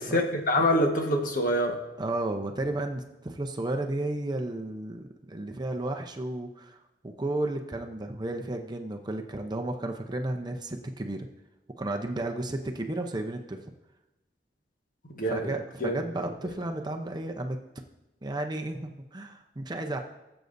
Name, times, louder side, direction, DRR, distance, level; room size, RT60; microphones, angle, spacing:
voice 1, 0.0-1.8 15.1-15.5 15.8-15.9, equal, 50° left, 2 dB, 1.5 m, -25 dB
voice 2, 2.0-6.8 7.2-11.3 11.8-13.6 15.3-17.6 18.2-20.0, right 2 dB, 25° right, 4 dB, 0.7 m, -33 dB
18.5 x 7.9 x 2.7 m, 0.99 s
head